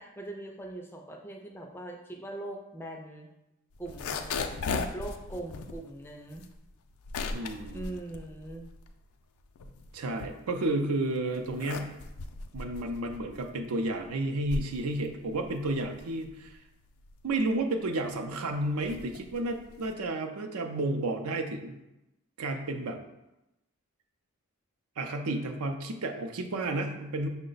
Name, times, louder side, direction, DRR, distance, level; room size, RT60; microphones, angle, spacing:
voice 1, 0.0-3.3 3.8-6.4 7.7-8.7, right 1 dB, 10° left, 2 dB, 0.3 m, -41 dB
sound 1, 3.7-9.0 9.4-10.8 11.3-20.1, left 4 dB, 80° left, 0.4 m, -38 dB
voice 2, 7.3-7.9 9.9-11.9 12.5-16.6 17.2-21.8 22.4-23.0 25.0-27.3, right 2 dB, 85° right, 5 dB, 0.5 m, -31 dB
5.7 x 2.1 x 3.9 m, 0.92 s
head